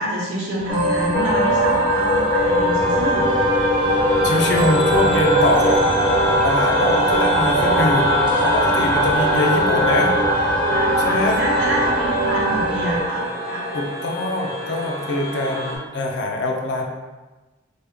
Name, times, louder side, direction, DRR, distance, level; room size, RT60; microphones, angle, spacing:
voice 1, 0.0-3.2 4.4-4.8 10.7-13.7, right 1 dB, 90° right, -5 dB, 1.0 m, -27 dB
sound 1, 0.6-9.3, right 2 dB, 75° right, 0.7 m, -37 dB
sound 2, 0.7-13.0, right 2 dB, 25° right, 0.5 m, -22 dB
sound 3, 1.1-15.8, left 1 dB, 20° left, 0.6 m, -22 dB
voice 2, 4.2-5.8 6.4-8.1 8.4-10.1 11.0-11.4 13.7-16.8, left 1 dB, 65° left, 2 dB, 0.5 m, -23 dB
3.2 x 2.3 x 3.3 m, 1.2 s
head